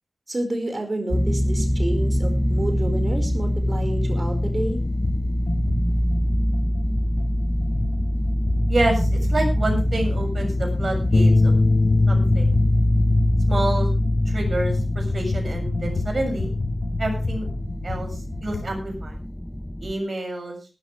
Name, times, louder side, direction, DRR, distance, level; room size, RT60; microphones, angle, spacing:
voice 1, 0.3-4.8, right 1 dB, 40° right, 5 dB, 5.0 m, -29 dB
sound 1, 1.1-19.9, equal, 10° left, 1.0 m, -24 dB
sound 2, 5.0-5.2 5.5-18.8, left 3 dB, 85° left, 5.6 m, -32 dB
voice 2, 8.7-11.6 12.1-12.6 13.5-13.9 14.3-16.5 17.0-17.5 17.8-19.2 19.8-20.6, right 2 dB, 55° right, 3 dB, 7.1 m, -28 dB
Bass guitar, 11.1-17.4, left 2 dB, 45° left, 1.5 m, -22 dB
18.0 x 13.5 x 3.4 m, 0.32 s
wide cardioid pair, 95°, 0 cm